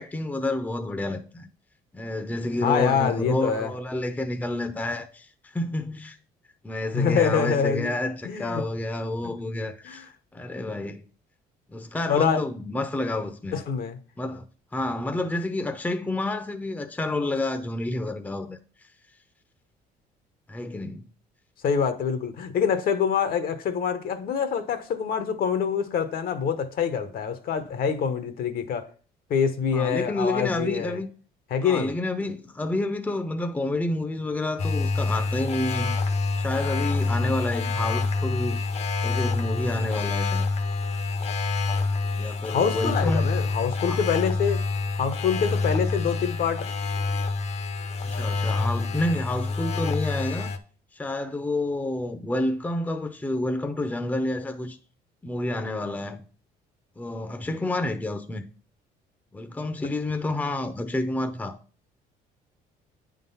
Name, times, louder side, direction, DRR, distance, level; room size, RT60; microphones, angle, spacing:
voice 1, 0.0-1.5 1.9-6.2 6.6-10.1 10.3-11.0 11.7-13.6 14.2-14.5 14.7-18.6 20.5-21.1 29.7-31.1 31.6-36.0 36.4-38.6 39.0-40.5 42.2-43.3 43.9-44.0 48.0-50.5 50.9-54.8 55.2-56.2 57.0-58.4 59.3-61.6, left 2 dB, 10° left, 0.6 m, -29 dB
voice 2, 2.6-3.7 6.9-7.9 8.2-8.6 9.2-9.3 9.8-10.1 12.1-12.4 13.5-14.0 21.6-28.9 29.3-31.0 31.5-31.9 42.5-44.6 44.9-46.6, left 7 dB, 60° left, 1.0 m, -25 dB
sound 1, 34.6-50.6, left 3 dB, 40° left, 0.7 m, -27 dB
8.9 x 3.8 x 5.6 m
cardioid pair, 110°, 17 cm